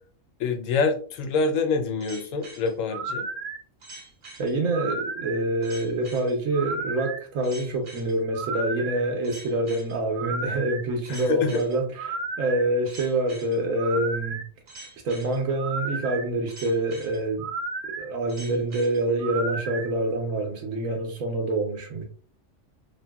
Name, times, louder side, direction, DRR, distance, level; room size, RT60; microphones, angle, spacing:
voice 1, 0.4-3.3 11.1-11.6, left 4 dB, 80° left, 1.0 m, -26 dB
sound 1, 2.0-19.9, right 3 dB, 50° right, 0.7 m, -35 dB
voice 2, 4.4-14.4 15.0-17.5 18.0-22.0, right 2 dB, 85° right, 1.2 m, -26 dB
2.9 x 2.7 x 2.2 m
omnidirectional pair, 1.3 m